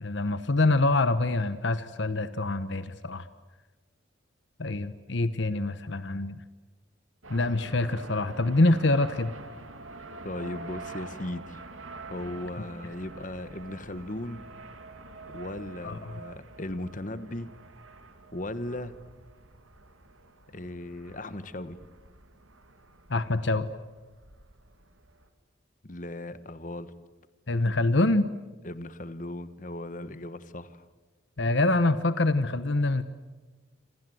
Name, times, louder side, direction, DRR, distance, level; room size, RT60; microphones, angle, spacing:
voice 1, 0.0-3.3 4.6-6.4 7.3-9.3 15.8-16.1 23.1-23.7 27.5-28.3 31.4-33.0, left 2 dB, 65° left, 12 dB, 1.1 m, -25 dB
sound 1, 7.2-25.3, right 2 dB, 85° right, 3.0 m, -46 dB
voice 2, 10.2-11.6 12.1-14.5 15.3-17.5 18.3-19.0 20.5-21.8 25.8-26.9 28.6-30.8, left 1 dB, 40° left, 12 dB, 1.3 m, -37 dB
28.0 x 26.5 x 7.9 m, 1.3 s
head